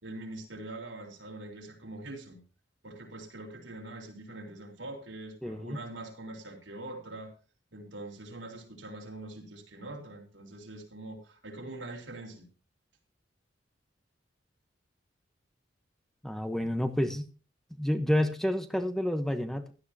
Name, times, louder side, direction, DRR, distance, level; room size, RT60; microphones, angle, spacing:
voice 1, 0.0-2.4 2.8-7.3 7.7-12.5, right 2 dB, 85° right, 1 dB, 3.7 m, -43 dB
voice 2, 5.4-5.8 16.2-17.2 17.8-19.7, left 1 dB, ahead, 8 dB, 1.0 m, -29 dB
16.0 x 12.5 x 2.8 m, 0.35 s
head